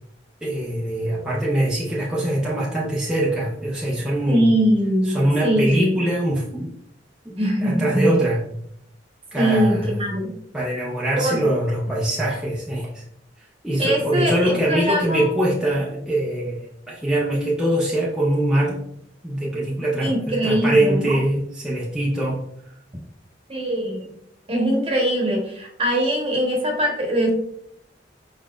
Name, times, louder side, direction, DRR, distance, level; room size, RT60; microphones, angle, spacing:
voice 1, 0.4-4.5 5.1-6.7 7.2-8.4 9.3-9.9 10.5-13.0 13.6-18.8 19.2-22.4, right 1 dB, 5° right, -7 dB, 0.7 m, -23 dB
voice 2, 4.3-6.0 7.4-8.2 9.4-10.3 11.1-11.4 13.8-15.3 20.0-21.2 23.5-24.1 24.5-27.3, equal, 30° right, 0 dB, 1.2 m, -22 dB
5.1 x 4.0 x 2.4 m, 0.72 s
head